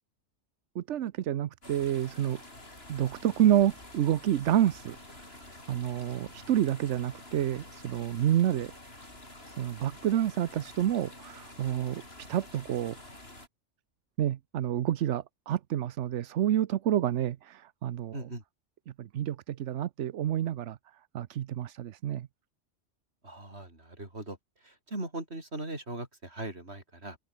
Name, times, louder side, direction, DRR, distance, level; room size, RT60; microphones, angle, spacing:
voice 1, 0.8-2.4 2.9-5.0 5.7-8.7 9.5-12.0 12.3-13.0 14.2-18.1 19.0-20.8 21.1-22.3, right 11 dB, 75° right, 1.0 m, -28 dB
sound 1, 1.6-13.5, left 1 dB, 55° left, 6.5 m, -49 dB
voice 2, 18.1-18.4 23.2-24.4 24.6-27.2, right 2 dB, 60° right, 5.6 m, -39 dB
open air
omnidirectional pair, 1.2 m